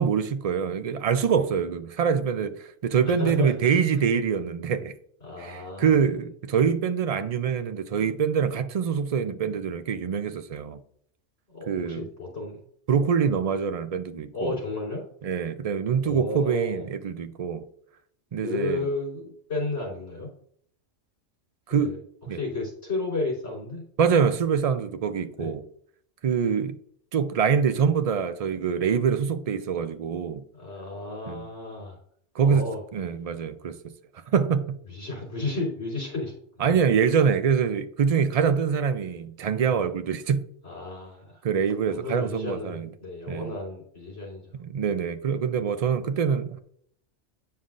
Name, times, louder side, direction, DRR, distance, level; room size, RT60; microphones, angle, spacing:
voice 1, 0.0-4.9 5.4-10.8 11.7-12.0 12.9-14.6 15.2-17.6 18.3-18.8 21.7-21.9 22.3-22.4 24.0-25.6 26.2-26.8 27.1-30.4 31.3-31.4 32.3-32.7 32.9-33.8 34.3-34.8 36.6-40.4 41.4-42.9 43.3-43.5 44.6-46.6, right 6 dB, 65° right, 0.3 m, -25 dB
voice 2, 3.2-3.8 5.2-6.2 11.5-12.6 14.3-15.0 16.0-16.9 18.4-20.3 21.7-22.0 22.3-23.8 25.3-25.5 30.5-32.0 32.4-32.8 34.9-36.8 40.6-41.4 41.9-44.5, left 2 dB, 65° left, 3.7 m, -33 dB
9.5 x 5.5 x 2.5 m
omnidirectional pair, 1.3 m